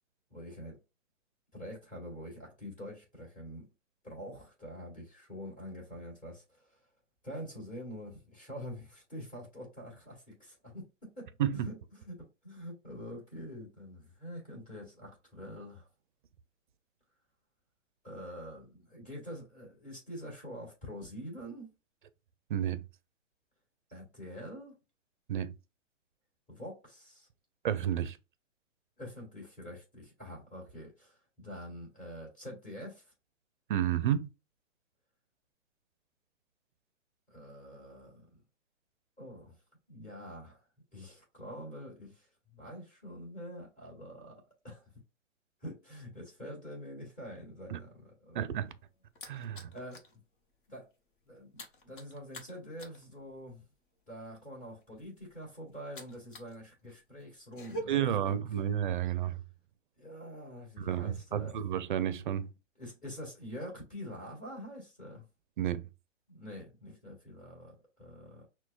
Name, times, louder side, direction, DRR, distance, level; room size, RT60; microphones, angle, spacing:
voice 1, 0.3-0.8 1.5-3.7 4.0-6.8 7.2-15.9 18.0-21.7 23.9-24.8 26.5-27.3 29.0-33.1 37.3-38.3 39.2-39.6 39.9-40.6 40.9-44.9 45.6-48.5 49.7-50.0 50.7-50.9 51.3-53.6 54.1-58.4 60.0-61.6 62.8-65.2 66.3-68.4, equal, 20° left, 2.0 m, -46 dB
voice 2, 22.5-22.8 25.3-25.5 27.6-28.2 33.7-34.3 47.7-47.8 48.3-48.7 49.3-49.7 57.9-59.4 60.8-62.5 65.6-65.9, right 10 dB, 40° right, 0.5 m, -31 dB
sound 1, 48.4-50.2 50.5-50.7 51.0-56.6 56.8-57.8, right 1 dB, 40° left, 1.1 m, -47 dB
5.9 x 2.3 x 2.4 m
hypercardioid pair, 135°, 38 cm